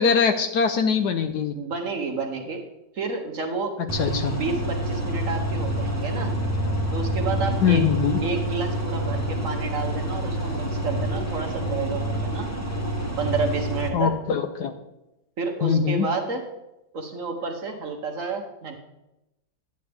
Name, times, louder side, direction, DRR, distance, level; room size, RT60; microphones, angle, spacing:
voice 1, 0.0-1.5 4.0-4.3 7.6-8.2 13.9-14.7 15.6-16.1, left 6 dB, 70° left, 7 dB, 1.1 m, -22 dB
voice 2, 1.5-2.6 2.9-3.7 4.3-6.3 6.9-7.9 8.2-12.5 13.2-14.1 15.4-16.4 16.9-18.7, right 4 dB, 50° right, 4 dB, 1.2 m, -30 dB
sound 1, 3.9-13.9, right 1 dB, 15° left, 0.7 m, -27 dB
10.5 x 9.0 x 3.4 m, 0.93 s
omnidirectional pair, 2.0 m